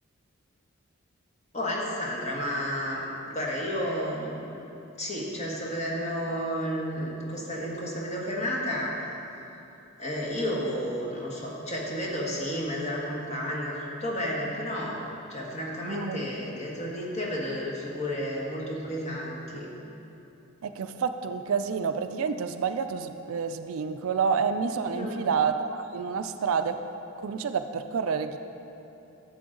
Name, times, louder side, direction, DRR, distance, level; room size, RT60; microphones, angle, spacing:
voice 1, 1.5-4.4 5.0-8.9 9.4-9.6 10.0-19.7 24.9-25.2, equal, 30° left, -3 dB, 1.4 m, -32 dB
voice 2, 15.8-16.3 20.6-26.8 27.2-28.4, right 6 dB, 70° right, 8 dB, 0.4 m, -29 dB
11.0 x 7.7 x 3.8 m, 3.0 s
head